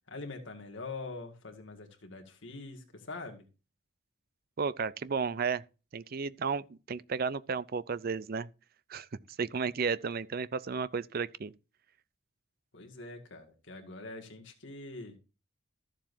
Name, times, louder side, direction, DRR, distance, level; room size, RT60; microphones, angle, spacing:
voice 1, 0.1-3.5 12.7-15.2, left 3 dB, 60° left, 2.0 m, -44 dB
voice 2, 4.6-5.6 5.9-8.5 8.9-9.1 9.4-11.5, right 5 dB, 45° right, 0.5 m, -33 dB
14.0 x 7.3 x 2.7 m
head